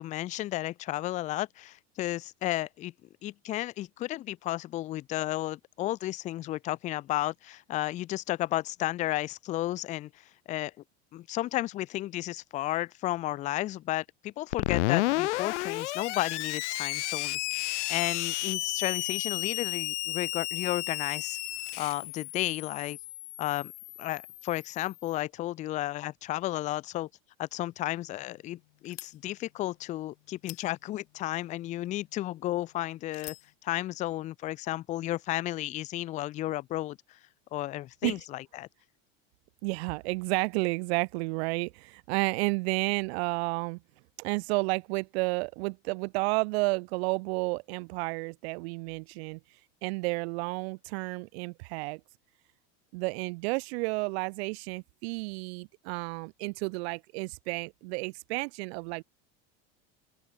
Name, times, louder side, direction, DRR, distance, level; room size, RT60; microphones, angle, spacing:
voice 1, 0.0-2.9 3.2-10.7 11.1-21.4 21.8-23.0 23.4-23.7 24.0-27.1 27.4-33.4 33.6-37.2 37.5-38.7, left 15 dB, 25° left, 0.4 m, -33 dB
Screech, 14.5-25.0, left 19 dB, 85° left, 1.7 m, -32 dB
sound 1, 27.7-33.5, left 24 dB, 70° left, 4.2 m, -52 dB
voice 2, 39.6-43.8 44.2-49.4 49.8-52.0 52.9-59.0, right 28 dB, 65° right, 0.6 m, -31 dB
open air
supercardioid pair, 150°, 34 cm